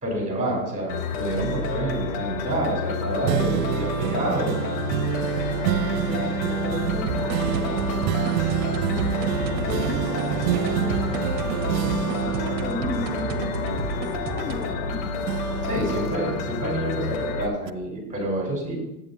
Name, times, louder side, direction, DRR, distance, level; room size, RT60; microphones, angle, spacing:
voice 1, 0.0-4.7 15.6-18.8, right 1 dB, 15° right, -1 dB, 3.4 m, -28 dB
sound 1, 0.9-17.5, left 4 dB, 45° left, 1.0 m, -30 dB
sound 2, 3.2-14.9 15.3-17.2 17.7-17.8, right 11 dB, 85° right, 0.6 m, -28 dB
voice 2, 5.7-8.0 8.9-9.1 9.6-15.4, left 2 dB, 20° left, -3 dB, 1.4 m, -34 dB
sound 3, 7.1-14.7, right 5 dB, 45° right, 1.0 m, -33 dB
10.5 x 8.1 x 2.6 m, 0.88 s
hypercardioid pair, 125°, 49 cm